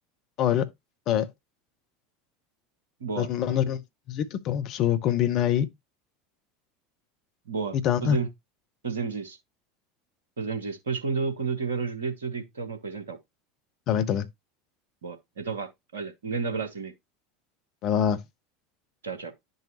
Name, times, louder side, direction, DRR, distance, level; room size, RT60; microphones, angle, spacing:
voice 1, 0.4-0.7 1.1-1.3 3.2-3.8 4.1-5.7 7.8-8.2 13.9-14.3 17.8-18.2, left 10 dB, 40° left, 0.7 m, -24 dB
voice 2, 3.0-3.8 7.5-8.3 8.8-9.4 10.4-13.2 15.0-16.9 19.0-19.3, right 5 dB, 70° right, 1.1 m, -32 dB
10.0 x 4.0 x 2.8 m
figure-of-eight pair, 75°, 0 cm